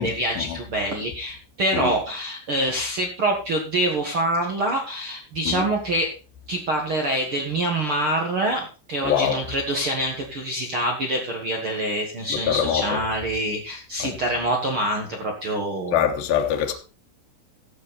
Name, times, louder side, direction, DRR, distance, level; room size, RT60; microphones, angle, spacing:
voice 1, 0.0-6.1 6.5-16.1 16.7-16.8, right 1 dB, 75° right, 1.2 m, -25 dB
voice 2, 9.0-9.4 12.3-12.9 14.0-14.1 15.9-16.7, left 9 dB, 65° left, 2.6 m, -23 dB
14.0 x 8.5 x 4.2 m
omnidirectional pair, 5.3 m